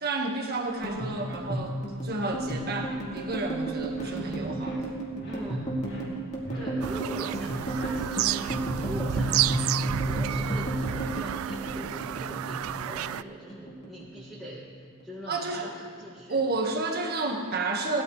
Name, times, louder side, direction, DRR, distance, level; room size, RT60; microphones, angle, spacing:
voice 1, 0.0-4.8 15.3-15.7 16.3-18.0, right 3 dB, 50° right, 1 dB, 1.6 m, -31 dB
sound 1, 0.7-13.3 13.5-14.6 14.8-15.2 15.5-16.2, right 1 dB, 35° left, 2.4 m, -32 dB
sound 2, 3.9-9.0, left 1 dB, 55° left, 3.4 m, -45 dB
voice 2, 5.3-5.6 6.5-14.6 15.0-16.4, equal, ahead, -10 dB, 2.0 m, -42 dB
Bird vocalization bird call bird song, 6.8-13.2, right 11 dB, 80° right, 0.3 m, -31 dB
19.5 x 12.5 x 3.3 m, 2.3 s
head